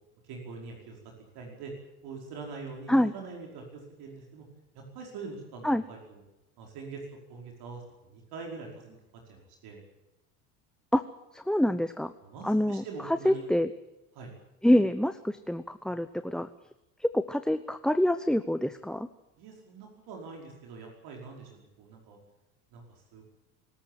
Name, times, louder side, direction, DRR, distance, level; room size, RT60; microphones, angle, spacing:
voice 1, 0.2-1.0 1.4-1.7 2.0-4.5 4.8-6.2 6.6-7.0 7.3-7.8 8.1-9.0 9.3-9.8 12.2-13.5 14.1-14.3 19.4-22.2 22.7-23.2, right 4 dB, 60° right, 1 dB, 5.3 m, -44 dB
voice 2, 11.3-12.1 12.4-12.8 13.2-13.7 14.6-16.5 17.0-19.1, left 1 dB, ahead, 11 dB, 0.8 m, -26 dB
24.5 x 14.0 x 9.2 m, 0.96 s
hypercardioid pair, 80°, 43 cm